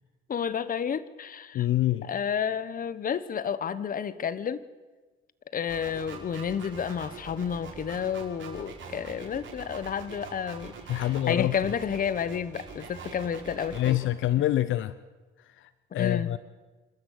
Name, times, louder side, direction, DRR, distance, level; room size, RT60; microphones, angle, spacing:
voice 1, 0.3-1.7 2.0-4.6 5.5-10.7 11.3-14.0 15.9-16.3, left 7 dB, 45° left, 16 dB, 1.1 m, -31 dB
voice 2, 1.5-2.1 10.9-11.5 13.7-14.9 15.6-16.4, left 13 dB, 75° left, 16 dB, 0.7 m, -26 dB
sound 1, 5.7-13.9, right 5 dB, 65° right, 5.7 m, -43 dB
27.5 x 13.0 x 8.2 m, 1.3 s
cardioid pair, 110°, 21 cm